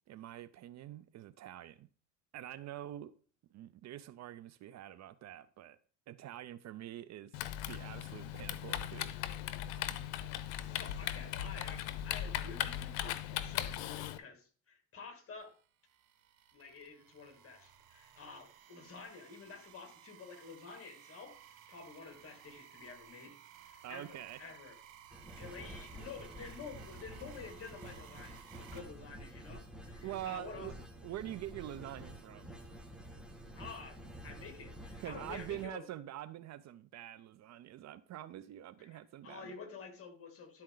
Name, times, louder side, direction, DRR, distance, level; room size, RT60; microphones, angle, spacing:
voice 1, 0.1-1.9 2.3-3.1 3.5-5.8 6.1-7.4 7.7-9.2 23.8-24.5 30.0-30.7 31.0-32.5 35.0-39.6, right 12 dB, 50° right, 0.5 m, -45 dB
Typing, 7.3-14.2, left 12 dB, 90° left, 0.7 m, -38 dB
voice 2, 10.7-15.5 16.5-23.4 23.6-24.7 25.1-30.7 33.6-35.8 38.8-40.6, left 5 dB, 40° left, 2.6 m, -50 dB
sound 1, 15.4-28.8, right 9 dB, 75° right, 1.6 m, -57 dB
sound 2, 25.1-35.7, equal, ahead, 1.5 m, -50 dB
11.5 x 4.3 x 3.8 m
cardioid pair, 100°, 36 cm